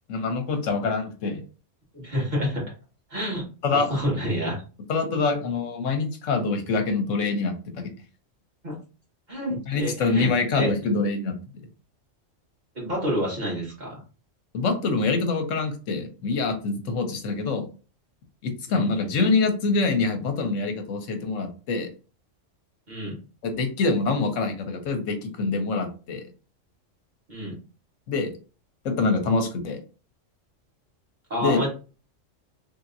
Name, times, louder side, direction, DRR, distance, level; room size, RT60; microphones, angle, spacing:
voice 1, 0.1-1.4 3.6-3.9 4.9-7.9 9.7-11.4 14.5-17.7 18.4-21.9 23.4-26.2 28.1-28.3 28.8-29.8 31.4-31.7, left 4 dB, 75° left, 6 dB, 1.2 m, -25 dB
voice 2, 1.9-2.6 3.1-3.4 3.7-4.6 8.6-8.7 9.3-10.7 12.8-14.0 18.7-18.9 22.9-23.1 27.3-27.6 31.3-31.7, equal, 35° right, -4 dB, 1.7 m, -28 dB
3.4 x 2.8 x 2.5 m, 0.35 s
omnidirectional pair, 1.3 m